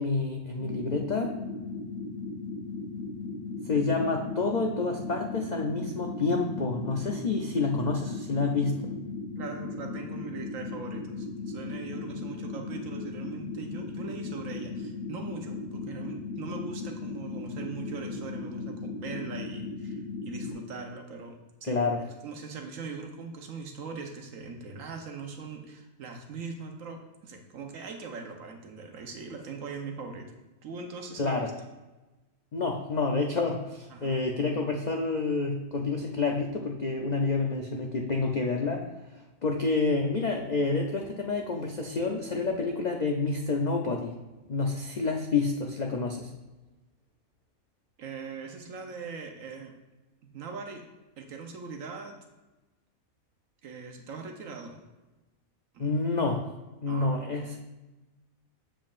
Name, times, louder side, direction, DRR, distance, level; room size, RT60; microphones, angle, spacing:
voice 1, 0.0-1.3 3.7-8.7 21.6-22.0 31.2-31.5 32.5-38.8 39.4-44.1 44.5-46.3 55.8-56.4 56.8-57.5, left 3 dB, 60° left, 1 dB, 0.4 m, -28 dB
sound 1, 0.6-20.5, left 3 dB, 25° right, 2.2 m, -37 dB
voice 2, 6.9-7.2 9.4-20.0 20.2-30.3 30.6-31.5 33.9-34.2 48.0-49.8 50.2-50.9 51.2-52.2 53.6-54.8 55.7-55.9 56.9-57.5, right 4 dB, 70° right, 3 dB, 1.2 m, -41 dB
7.4 x 7.3 x 2.5 m, 1.1 s
omnidirectional pair, 1.5 m